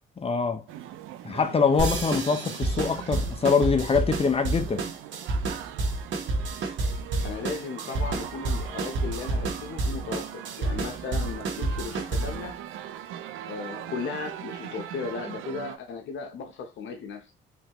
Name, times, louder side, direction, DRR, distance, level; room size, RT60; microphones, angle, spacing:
voice 1, 0.2-0.6 1.2-4.8, left 5 dB, 30° left, 0.8 m, -24 dB
sound 1, 0.7-15.8, right 11 dB, 90° right, 0.5 m, -41 dB
sound 2, 1.8-12.5, right 2 dB, 70° right, 1.4 m, -29 dB
voice 2, 7.2-12.6 13.5-17.3, left 5 dB, 75° left, 0.8 m, -36 dB
4.0 x 3.2 x 3.0 m
cardioid pair, 90°, 20 cm